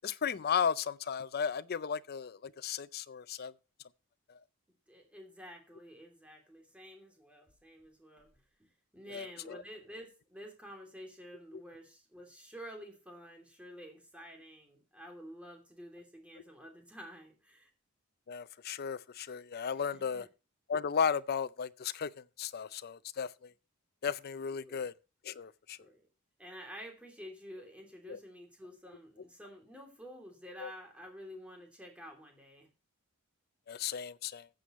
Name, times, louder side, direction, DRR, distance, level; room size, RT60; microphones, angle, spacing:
voice 1, 0.0-3.5 9.1-9.6 18.3-20.3 20.7-23.5 24.0-24.9 25.2-25.8 28.1-28.2 30.6-30.7 33.7-34.5, left 7 dB, 45° left, 0.5 m, -35 dB
voice 2, 4.9-17.7 19.9-20.3 24.5-24.9 25.8-26.1 26.4-32.7, equal, 5° right, 2.9 m, -50 dB
14.5 x 7.8 x 3.1 m
head